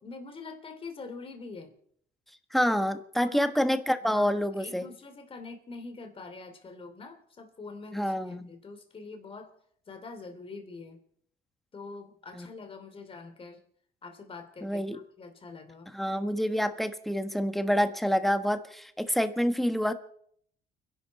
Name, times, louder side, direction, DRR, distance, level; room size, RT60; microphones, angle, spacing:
voice 1, 0.0-1.7 3.1-3.4 4.0-9.5 9.9-11.0 11.7-13.6 14.0-16.3, left 4 dB, 35° left, 6 dB, 3.0 m, -44 dB
voice 2, 2.5-4.9 7.9-8.5 12.3-12.5 14.6-15.0 15.9-19.9, equal, ahead, 8 dB, 1.3 m, -27 dB
30.0 x 11.5 x 4.2 m, 0.65 s
cardioid pair, 110°, 17 cm